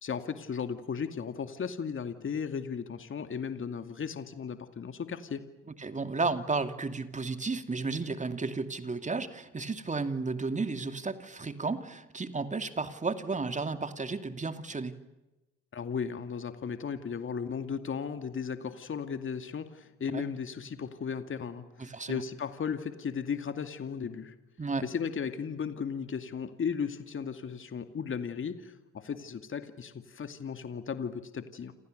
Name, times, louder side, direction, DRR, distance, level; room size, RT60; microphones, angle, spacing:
voice 1, 0.0-5.4 15.7-24.3 24.8-31.7, left 6 dB, 35° left, 8 dB, 2.4 m, -36 dB
voice 2, 5.8-15.0 20.1-20.2 21.8-22.2 24.6-24.9, right 3 dB, 20° right, 9 dB, 2.6 m, -33 dB
28.5 x 28.0 x 6.7 m, 1.0 s
hypercardioid pair, 65°, 34 cm